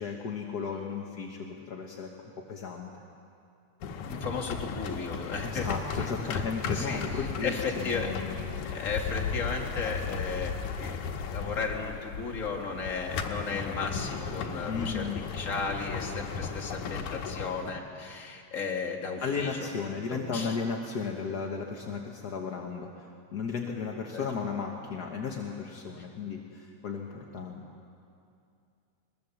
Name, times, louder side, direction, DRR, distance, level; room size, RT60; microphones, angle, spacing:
voice 1, 0.0-2.9 5.4-8.4 14.7-15.2 19.2-27.6, left 5 dB, 50° left, 0 dB, 1.2 m, -35 dB
sound 1, 3.8-17.7, left 6 dB, 80° left, 2.6 m, -35 dB
voice 2, 4.1-5.7 6.0-6.4 6.7-8.1 8.6-15.1 15.3-19.6 20.1-20.6 24.1-24.3, left 4 dB, 30° left, 1 dB, 1.9 m, -35 dB
22.0 x 20.5 x 7.1 m, 2.5 s
omnidirectional pair, 3.4 m